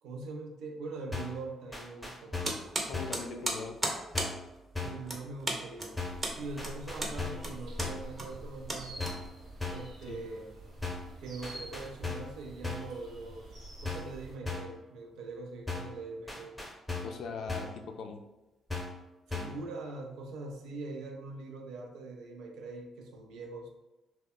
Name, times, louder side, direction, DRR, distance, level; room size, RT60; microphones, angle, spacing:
voice 1, 0.0-2.4 4.8-6.0 6.4-9.1 9.7-10.5 11.2-16.6 19.3-23.7, right 3 dB, 85° right, 2 dB, 0.4 m, -42 dB
sound 1, 1.1-1.4 1.7-2.6 2.9-3.3 4.1-4.5 4.7-5.1 6.0-6.3 6.6-7.5 7.8-8.1 9.0-9.3 9.6-9.9 10.8-11.1 11.4-12.4 12.6-13.0 13.8-14.2 14.5-14.8 15.7-16.0 16.3-17.2 17.5-17.8 18.7-19.0 19.3-19.6, left 3 dB, 10° left, 0.7 m, -37 dB
sound 2, 2.4-9.6, right 1 dB, 30° right, 0.6 m, -37 dB
voice 2, 2.9-3.8 10.1-10.2 17.0-18.2, left 5 dB, 65° left, 5 dB, 0.3 m, -40 dB
sound 3, 6.1-14.4, right 1 dB, 70° right, 0.8 m, -47 dB
2.8 x 2.0 x 2.2 m, 1.0 s
cardioid pair, 90°, 0 cm